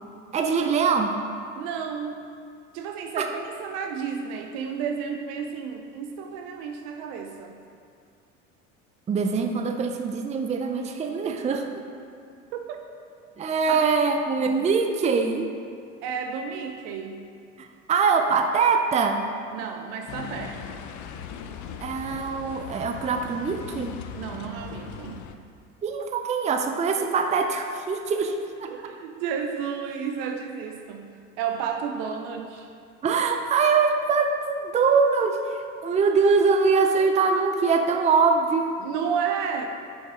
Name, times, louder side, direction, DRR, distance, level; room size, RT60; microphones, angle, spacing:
voice 1, 0.3-1.1 3.2-3.3 9.1-11.8 13.4-15.5 17.6-19.2 21.8-23.9 25.8-28.7 33.0-38.8, right 5 dB, 20° right, 5 dB, 0.5 m, -23 dB
voice 2, 1.6-2.2 2.7-7.6 12.5-12.8 13.7-13.9 16.0-17.2 19.5-20.8 24.1-25.3 28.6-31.1 31.4-32.7 38.8-39.7, right 7 dB, 65° right, 4 dB, 0.7 m, -32 dB
sound 1, 20.1-25.4, left 7 dB, 50° left, 0.6 m, -39 dB
6.4 x 5.7 x 4.9 m, 2.3 s
hypercardioid pair, 85°, 38 cm